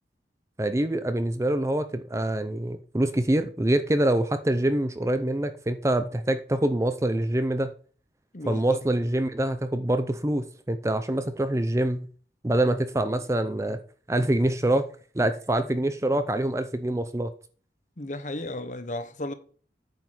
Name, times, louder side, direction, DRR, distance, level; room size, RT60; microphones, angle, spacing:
voice 1, 0.6-7.7 8.5-12.1 12.4-13.8 14.1-14.8 15.1-17.3, right 1 dB, 15° right, 0.5 m, -25 dB
voice 2, 8.3-8.8 18.0-19.3, left 1 dB, 45° left, 1.0 m, -34 dB
9.3 x 5.1 x 6.0 m
head